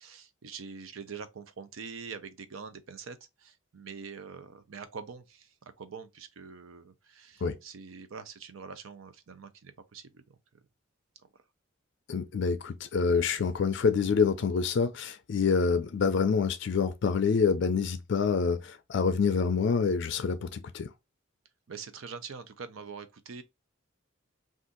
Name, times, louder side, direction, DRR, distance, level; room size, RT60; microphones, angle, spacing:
voice 1, 0.0-10.4 21.7-23.4, right 5 dB, 80° right, 0.6 m, -44 dB
voice 2, 12.1-20.9, left 5 dB, 60° left, 0.4 m, -27 dB
2.6 x 2.4 x 3.6 m
head